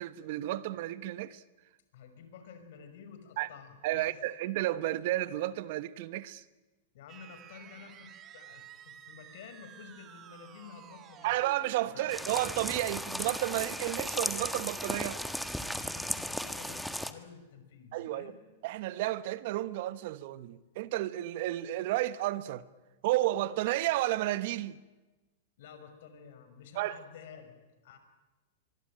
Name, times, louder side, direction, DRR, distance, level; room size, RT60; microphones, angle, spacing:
voice 1, 0.0-1.4 3.4-3.5 3.8-6.4 11.2-15.2 17.9-18.3 18.6-22.7 23.0-24.8 26.7-27.0, right 15 dB, 60° right, 1.2 m, -32 dB
voice 2, 1.9-4.2 6.9-11.4 11.9-12.1 15.7-18.4 25.6-28.0, left 6 dB, 65° left, 5.8 m, -51 dB
sound 1, 7.1-13.6, right 8 dB, 30° right, 2.7 m, -53 dB
sound 2, 12.1-17.1, equal, ahead, 1.6 m, -36 dB
24.5 x 23.0 x 9.1 m
hypercardioid pair, 110°, 0 cm